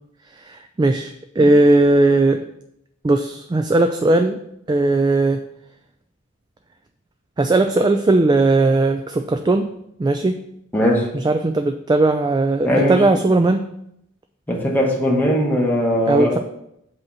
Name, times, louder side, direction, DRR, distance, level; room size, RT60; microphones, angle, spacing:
voice 1, 0.4-2.4 3.0-4.4 4.7-5.4 7.4-9.7 10.0-10.4 11.1-13.7 16.1-16.4, right 2 dB, 20° right, 6 dB, 0.3 m, -17 dB
voice 2, 10.7-11.1 12.6-13.0 14.5-16.3, equal, 10° left, -2 dB, 1.3 m, -19 dB
7.7 x 2.9 x 6.1 m, 0.77 s
head